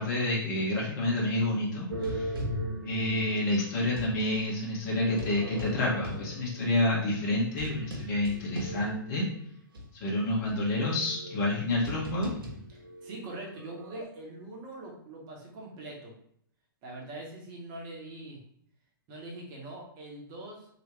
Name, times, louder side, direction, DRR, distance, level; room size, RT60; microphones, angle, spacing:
voice 1, 0.0-2.4 2.8-9.2 10.0-12.3, left 1 dB, 50° left, -5 dB, 1.3 m, -29 dB
Zombies banging at door, 1.9-4.2 5.0-9.3 9.7-9.8 10.5-14.0, right 1 dB, 80° right, 1.0 m, -39 dB
voice 2, 12.7-16.1 16.8-18.4 19.1-20.7, right 2 dB, 35° right, -1 dB, 1.2 m, -43 dB
3.1 x 2.9 x 3.1 m, 0.68 s
figure-of-eight pair, 115°, 12 cm